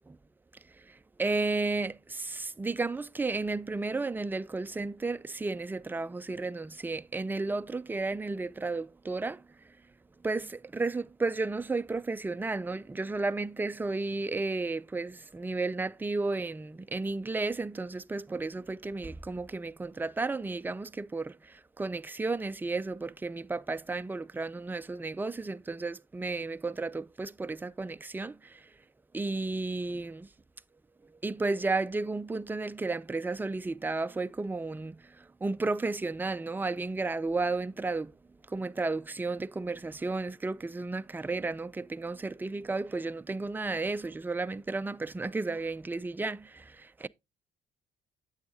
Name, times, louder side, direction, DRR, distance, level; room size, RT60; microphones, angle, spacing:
voice 1, 1.2-9.4 10.2-28.6 29.1-30.3 31.2-38.1 38.5-47.1, right 3 dB, 10° right, 0.3 m, -33 dB
8.5 x 7.9 x 2.7 m
cardioid pair, 90°, 20 cm